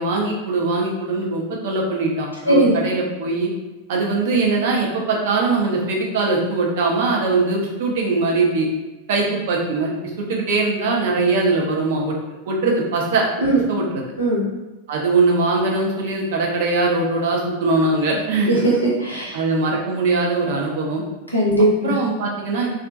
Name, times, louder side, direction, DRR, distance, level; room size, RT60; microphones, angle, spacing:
voice 1, 0.0-3.5 3.9-8.7 9.1-12.1 12.5-13.2 13.7-13.8 14.9-18.6 19.3-21.0 21.8-22.7, right 3 dB, 55° right, -1 dB, 0.5 m, -21 dB
voice 2, 18.5-19.3 21.3-21.9, right 1 dB, 85° left, -5 dB, 0.7 m, -18 dB
2.4 x 2.1 x 2.5 m, 1.1 s
figure-of-eight pair, 90°, 0 cm